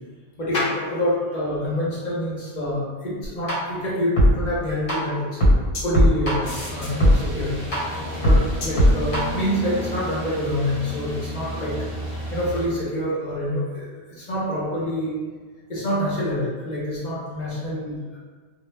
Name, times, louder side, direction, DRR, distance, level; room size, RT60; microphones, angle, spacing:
voice 1, 0.4-5.4 5.8-7.5 8.2-11.7 12.3-15.2 15.7-18.2, left 1 dB, 50° left, -7 dB, 0.7 m, -26 dB
sound 1, 3.5-3.6 4.2-4.3 4.9-5.0 5.4-7.1 7.7-7.8 8.2-9.2, equal, 85° left, 1.1 m, -16 dB
sound 2, 6.4-12.7, equal, 25° right, 0.7 m, -33 dB
2.0 x 2.0 x 3.2 m, 1.5 s
omnidirectional pair, 1.1 m